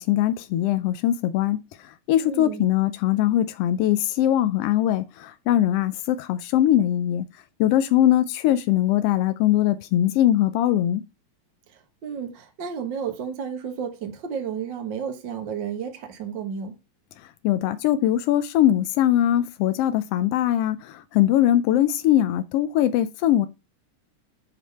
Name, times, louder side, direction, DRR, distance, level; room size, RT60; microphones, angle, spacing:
voice 1, 0.0-7.3 7.6-11.0 17.4-23.5, left 12 dB, 80° left, 1.3 m, -21 dB
voice 2, 2.2-2.7 11.7-16.7, right 7 dB, 50° right, 1.6 m, -32 dB
8.0 x 5.2 x 5.6 m
omnidirectional pair, 3.4 m